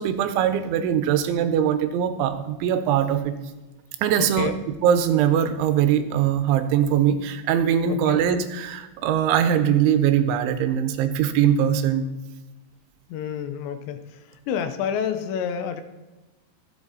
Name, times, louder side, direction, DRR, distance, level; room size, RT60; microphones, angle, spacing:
voice 1, 0.0-3.3 4.0-4.5 4.8-12.0, right 9 dB, 85° right, 9 dB, 3.2 m, -21 dB
voice 2, 4.2-4.6 7.9-8.2 13.1-14.0 14.5-15.8, left 8 dB, 80° left, 9 dB, 2.9 m, -28 dB
14.5 x 8.1 x 4.0 m, 1.1 s
omnidirectional pair, 5.3 m